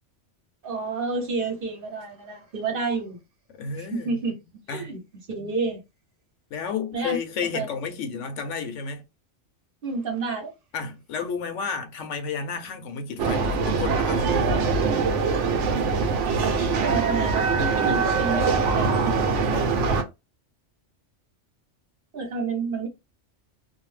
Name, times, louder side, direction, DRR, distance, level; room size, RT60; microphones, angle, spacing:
voice 1, 0.6-3.2 3.8-4.4 4.7-5.0 5.3-5.8 6.9-7.2 7.5-7.7 9.8-10.5 16.8-20.0 22.1-22.9, right 4 dB, 50° right, 1.0 m, -30 dB
voice 2, 3.5-4.1 4.7-4.9 6.5-9.0 10.7-14.5, left 5 dB, 85° left, 1.0 m, -31 dB
sound 1, 13.2-20.0, right 4 dB, 80° right, 1.0 m, -23 dB
2.6 x 2.1 x 3.1 m
omnidirectional pair, 1.2 m